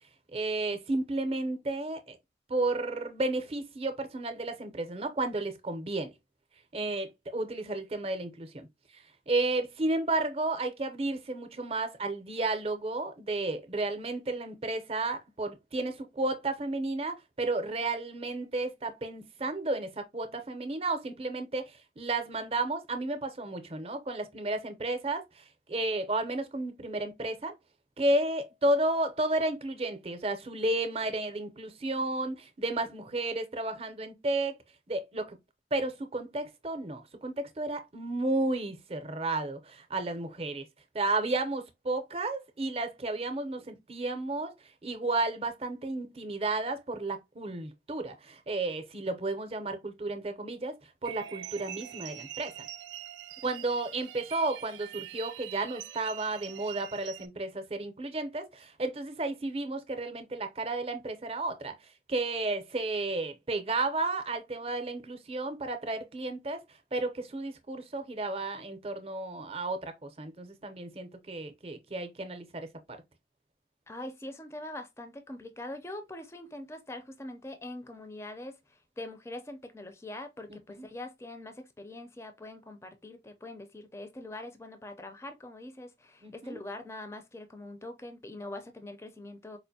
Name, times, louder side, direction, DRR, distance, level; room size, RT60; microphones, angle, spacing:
voice 1, 0.3-2.2 2.5-6.1 6.7-8.7 8.9-27.5 28.0-34.6 34.9-35.4 35.7-40.6 40.9-44.5 44.8-50.7 51.0-52.7 53.4-61.7 62.1-66.6 66.9-73.0 80.5-80.9 86.2-86.6, right 2 dB, 35° right, 0.6 m, -32 dB
sound 1, 51.0-57.3, right 11 dB, 85° right, 0.4 m, -44 dB
voice 2, 73.9-89.6, left 1 dB, 15° left, 0.4 m, -43 dB
4.3 x 2.5 x 2.7 m
head